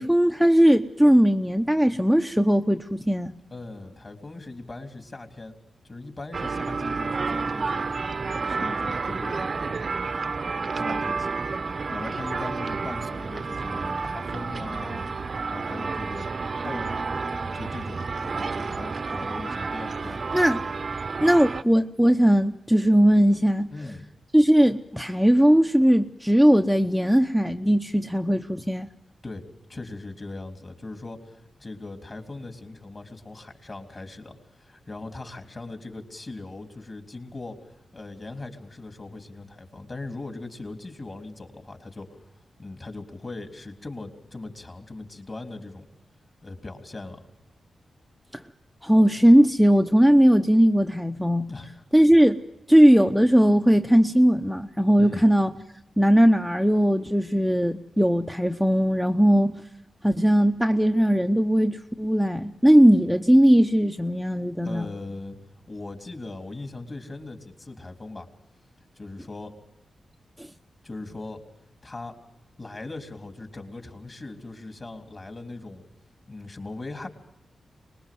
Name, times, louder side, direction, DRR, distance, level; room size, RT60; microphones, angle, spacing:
voice 1, 0.0-3.3 20.3-20.6 21.2-23.7 24.3-28.9 48.3-48.4 48.8-51.5 51.9-52.4 52.7-55.5 56.0-59.5 60.0-64.9 70.4-70.5, equal, ahead, 6 dB, 0.8 m, -19 dB
voice 2, 3.5-5.6 5.8-7.9 8.5-9.4 10.8-11.4 11.9-16.3 16.6-20.3 23.7-24.1 29.2-29.4 29.7-37.6 37.9-42.2 42.6-45.8 46.4-47.2 51.5-51.7 55.0-55.2 64.6-65.4 65.7-68.3 69.0-69.5 70.8-71.4 71.8-72.2 72.6-75.8 76.3-77.1, left 2 dB, 35° left, 5 dB, 3.5 m, -39 dB
sound 1, 6.3-21.6, right 4 dB, 45° right, 0.9 m, -30 dB
24.5 x 21.0 x 7.8 m, 0.86 s
wide cardioid pair, 95°, 0 cm